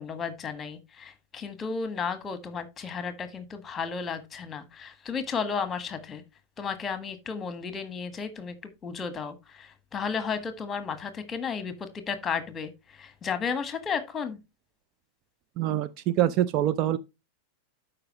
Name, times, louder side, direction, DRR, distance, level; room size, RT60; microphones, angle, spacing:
voice 1, 0.0-6.2 6.6-14.4, left 6 dB, 20° left, 1.4 m, -33 dB
voice 2, 15.6-17.0, right 12 dB, 40° right, 0.5 m, -25 dB
12.5 x 5.1 x 2.9 m
figure-of-eight pair, 90°, 0 cm